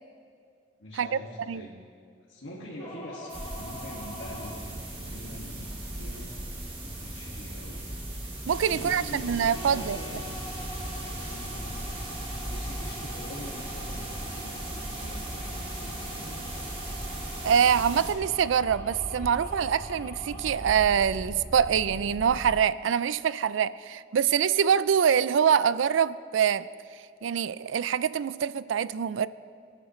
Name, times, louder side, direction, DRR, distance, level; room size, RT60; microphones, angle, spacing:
voice 1, 0.8-1.8 2.3-6.3 6.8-7.8 8.7-10.4 11.3-11.9 12.2-16.4, left 1 dB, 85° left, -7 dB, 2.0 m, -44 dB
sound 1, 2.8-4.6 9.5-20.6, equal, 15° left, 3.8 m, -44 dB
sound 2, 3.3-22.6, right 1 dB, 10° right, 0.5 m, -40 dB
sound 3, 3.3-18.1, right 2 dB, 30° right, 2.2 m, -41 dB
voice 2, 8.5-10.0 17.4-26.6 27.2-29.3, right 7 dB, 80° right, 17 dB, 0.4 m, -24 dB
24.5 x 10.0 x 3.1 m, 2.3 s
head